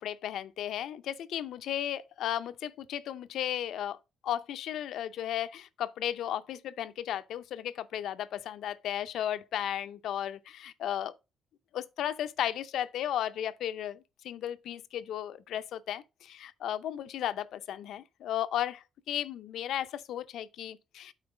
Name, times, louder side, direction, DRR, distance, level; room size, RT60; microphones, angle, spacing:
voice 1, 0.0-4.0 4.2-11.1 11.7-21.1, left 11 dB, 75° left, 0.5 m, -35 dB
8.9 x 3.9 x 4.9 m
cardioid pair, 90°, 0 cm